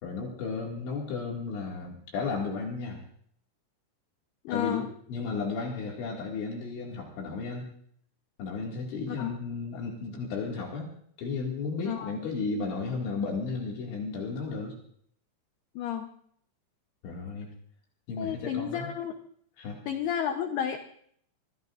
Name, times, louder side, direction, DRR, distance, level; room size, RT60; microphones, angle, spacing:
voice 1, 0.0-3.0 4.5-4.8 5.1-7.7 8.4-14.7 17.0-17.5 18.1-18.9 19.6-19.8, left 4 dB, 65° left, -2 dB, 4.4 m, -34 dB
voice 2, 4.4-4.9 9.1-9.3 11.9-12.1 15.8-16.1 18.2-19.1 19.9-20.8, left 9 dB, 85° left, 6 dB, 2.2 m, -31 dB
26.0 x 22.0 x 2.5 m, 0.66 s
omnidirectional pair, 5.9 m